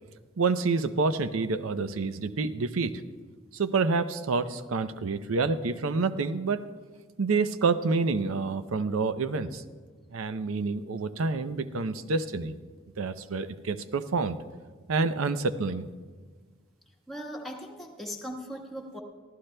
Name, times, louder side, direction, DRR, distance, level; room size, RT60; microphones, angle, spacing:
voice 1, 0.4-3.0 3.5-6.6 7.2-9.6 10.1-12.5 13.0-14.4 14.9-15.9, right 4 dB, 90° right, 11 dB, 0.6 m, -28 dB
voice 2, 17.1-19.0, equal, ahead, -1 dB, 1.3 m, -39 dB
23.5 x 15.0 x 2.2 m, 1.5 s
head